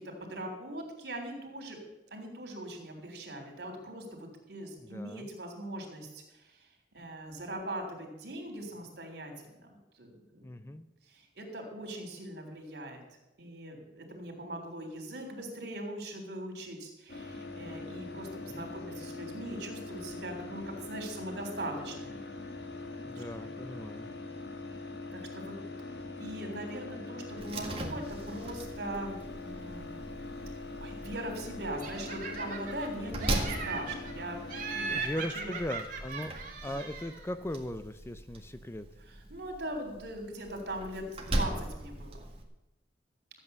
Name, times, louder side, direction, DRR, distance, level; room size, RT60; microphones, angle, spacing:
voice 1, 0.0-1.8 2.1-6.7 6.9-10.7 11.1-13.0 13.4-22.2 23.0-23.5 24.8-25.5 25.8-25.9 26.2-29.9 30.8-35.0 35.3-35.6 36.7-36.8 39.1-42.3, right 1 dB, 65° right, 3 dB, 3.4 m, -41 dB
voice 2, 4.8-5.3 10.4-10.9 18.5-18.7 23.1-24.1 34.9-36.3 36.6-38.9, left 1 dB, 15° left, 11 dB, 0.5 m, -38 dB
sound 1, 17.1-35.0, left 2 dB, 70° left, 1.6 m, -42 dB
Slam, 27.4-42.4, right 1 dB, 35° right, 1.9 m, -40 dB
Laughter, 31.8-32.9 33.2-34.1 34.5-37.3, right 4 dB, 50° right, 2.3 m, -38 dB
14.0 x 8.5 x 6.7 m, 0.95 s
head